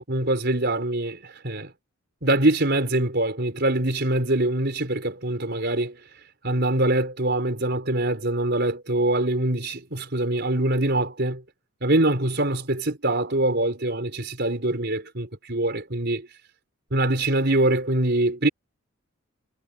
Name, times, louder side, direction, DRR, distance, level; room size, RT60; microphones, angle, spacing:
voice 1, 0.0-1.7 2.2-6.0 6.4-11.4 11.8-16.3 16.9-18.5, right 1 dB, 50° right, 4.7 m, -24 dB
head